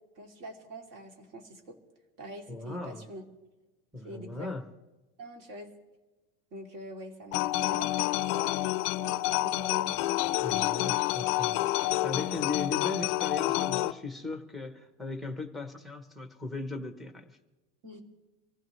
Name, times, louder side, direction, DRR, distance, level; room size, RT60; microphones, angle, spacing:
voice 1, 0.2-1.8 2.2-3.2 4.0-4.5 5.2-5.7 6.5-9.9 10.4-10.9 17.8-18.0, equal, 50° right, 2 dB, 2.7 m, -45 dB
voice 2, 2.5-3.1 3.9-4.7 10.4-17.4, left 3 dB, ahead, 6 dB, 0.8 m, -38 dB
sound 1, 7.3-13.9, left 16 dB, 45° left, 0.4 m, -28 dB
25.5 x 15.5 x 3.1 m, 1.2 s
cardioid pair, 175°, 31 cm